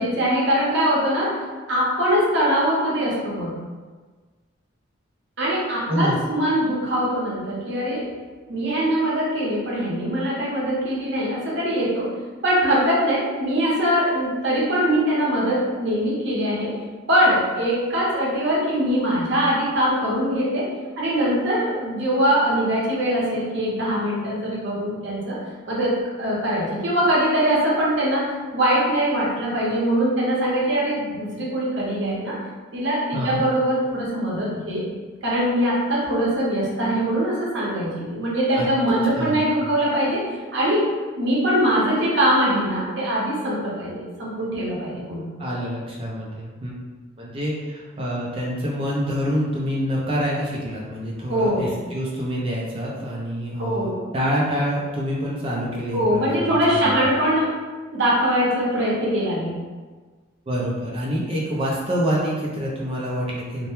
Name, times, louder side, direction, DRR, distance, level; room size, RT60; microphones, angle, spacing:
voice 1, 0.0-1.4 1.7-3.5 5.4-8.1 8.5-12.1 12.4-16.7 17.1-20.7 21.0-25.4 25.7-32.3 32.7-34.8 35.2-40.2 40.5-40.9 41.2-45.3 51.3-51.7 53.6-54.0 55.9-57.5 57.9-59.6, equal, 60° right, -6 dB, 0.7 m, -22 dB
voice 2, 39.1-39.5 45.4-46.7 47.2-56.9 60.5-63.7, equal, 25° right, -4 dB, 0.3 m, -26 dB
2.1 x 2.0 x 2.9 m, 1.4 s
head